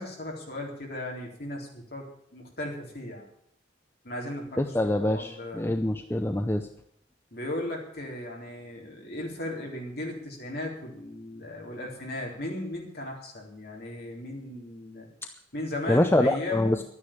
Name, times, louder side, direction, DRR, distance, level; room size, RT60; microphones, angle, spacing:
voice 1, 0.0-2.1 2.3-3.3 4.0-5.7 7.3-15.1 15.5-16.8, left 1 dB, 55° left, -1 dB, 3.8 m, -36 dB
voice 2, 4.6-6.7 15.9-16.8, left 1 dB, 10° left, 7 dB, 0.6 m, -25 dB
12.0 x 9.7 x 8.8 m, 0.70 s
head